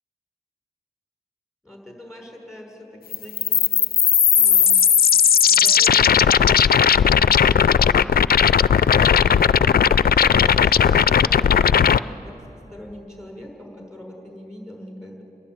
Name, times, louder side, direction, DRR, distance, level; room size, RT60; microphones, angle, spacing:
voice 1, 1.6-3.6 4.3-4.8 5.5-7.9 9.8-12.4 12.7-15.2, left 1 dB, 5° right, 0 dB, 6.1 m, -41 dB
sound 1, 3.1-12.0, left 7 dB, 65° left, 0.4 m, -16 dB
30.0 x 11.0 x 9.3 m, 2.8 s
cardioid pair, 55°, 17 cm